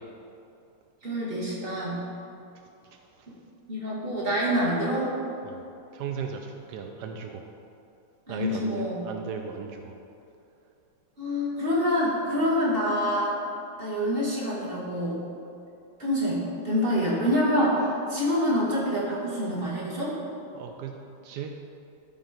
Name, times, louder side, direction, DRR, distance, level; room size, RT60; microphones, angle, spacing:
voice 1, 1.0-2.0 3.7-5.1 8.3-9.0 11.2-13.3 13.8-15.2 16.0-20.1, equal, 25° right, -6 dB, 1.8 m, -26 dB
voice 2, 5.9-7.4 8.3-9.9 20.5-20.9 21.2-21.5, right 6 dB, 85° right, 4 dB, 0.9 m, -36 dB
12.5 x 4.1 x 5.0 m, 2.7 s
omnidirectional pair, 2.4 m